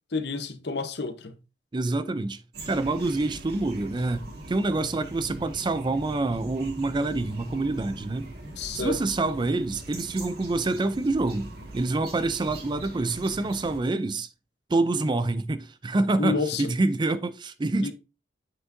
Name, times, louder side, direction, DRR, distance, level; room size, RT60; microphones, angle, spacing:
voice 1, 0.1-1.3 8.6-9.0 16.2-16.7 17.8-17.9, left 4 dB, 65° left, 0.9 m, -29 dB
voice 2, 1.7-2.4 2.7-8.3 8.7-11.5 11.7-14.3 14.7-17.9, right 2 dB, 25° right, 0.4 m, -26 dB
sound 1, 2.5-13.8, right 1 dB, 60° right, 1.8 m, -42 dB
8.0 x 6.0 x 2.6 m
head